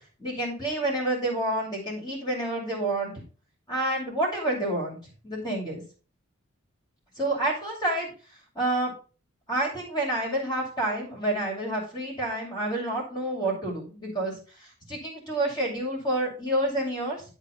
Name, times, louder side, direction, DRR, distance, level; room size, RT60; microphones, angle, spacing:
voice 1, 0.2-3.2 3.7-5.0 5.2-5.8 7.1-8.1 8.5-8.9 9.5-17.2, right 1 dB, 20° left, -2 dB, 3.0 m, -29 dB
10.0 x 4.3 x 5.1 m, 0.37 s
head